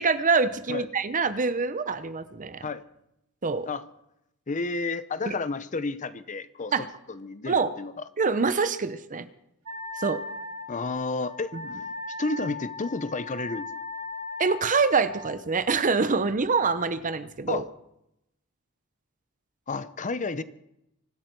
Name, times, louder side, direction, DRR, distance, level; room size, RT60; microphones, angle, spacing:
voice 1, 0.0-2.7 3.4-3.7 5.3-5.4 6.7-6.9 7.5-7.7 8.2-9.3 10.0-10.2 11.5-11.6 14.4-17.6, right 4 dB, 35° right, 12 dB, 0.8 m, -25 dB
voice 2, 4.5-7.9 10.7-11.5 12.2-13.7 17.5-17.7 19.7-20.4, left 3 dB, 35° left, 14 dB, 0.7 m, -31 dB
Wind instrument woodwind instrument, 9.7-15.3, left 3 dB, 80° right, 2.8 m, -38 dB
24.5 x 12.0 x 4.6 m, 0.82 s
head